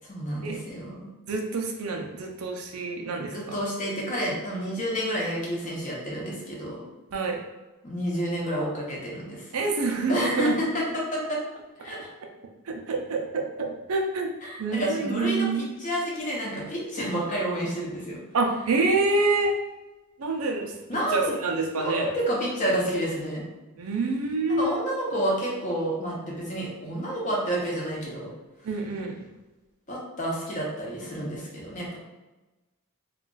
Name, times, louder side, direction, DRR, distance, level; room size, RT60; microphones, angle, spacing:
voice 1, 0.0-1.1 3.3-6.8 7.8-9.5 10.1-11.4 11.8-12.1 14.4-18.2 20.9-21.4 21.7-23.4 24.5-28.3 29.9-32.0, right 1 dB, 35° left, -4 dB, 0.8 m, -29 dB
voice 2, 1.3-3.4 7.1-7.4 9.5-10.6 12.7-14.3 14.6-15.7 18.3-19.5 20.2-22.1 23.8-24.8 28.6-29.1, right 3 dB, 70° right, 2 dB, 0.5 m, -27 dB
2.4 x 2.3 x 3.8 m, 1.1 s
head